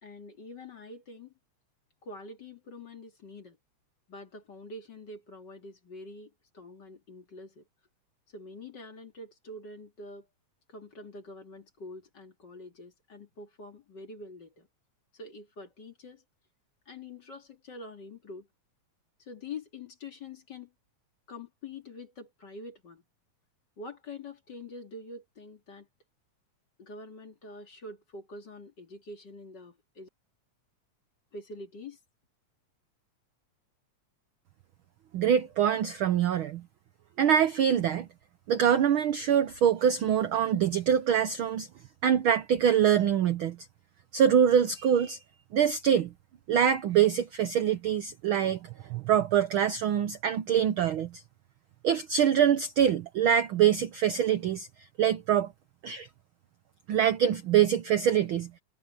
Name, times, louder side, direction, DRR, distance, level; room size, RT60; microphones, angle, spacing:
voice 1, 0.0-1.3 2.0-3.6 4.1-7.6 8.3-10.3 10.7-14.7 15.1-16.2 16.9-18.5 19.2-20.7 21.3-23.0 23.8-25.9 26.8-30.1 31.3-32.0, left 2 dB, 35° left, 2.7 m, -45 dB
voice 2, 35.1-36.6 37.2-38.1 38.5-41.7 42.0-43.6 44.1-45.2 45.5-46.1 46.5-51.1 51.8-54.7 55.0-55.5 55.8-56.1 56.9-58.5, right 9 dB, 80° right, 1.1 m, -24 dB
omnidirectional pair, 3.5 m